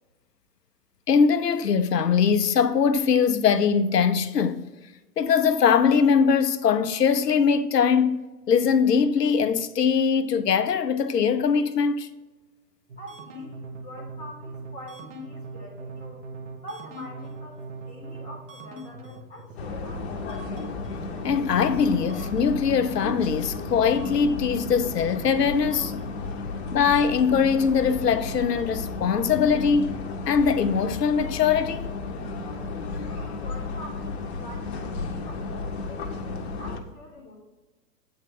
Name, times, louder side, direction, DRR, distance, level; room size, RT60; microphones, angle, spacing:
voice 1, 1.1-4.6 5.2-12.1 21.2-26.0 26.7-31.9, left 6 dB, 85° left, 0.7 m, -22 dB
sound 1, 12.9-26.7, right 2 dB, 50° right, 1.4 m, -42 dB
voice 2, 13.0-16.2 16.6-20.3 33.0-37.4, equal, 5° right, 0.3 m, -45 dB
sound 2, 19.6-36.8, left 3 dB, 40° left, 0.8 m, -33 dB
8.0 x 4.3 x 3.6 m
figure-of-eight pair, 120°, 47 cm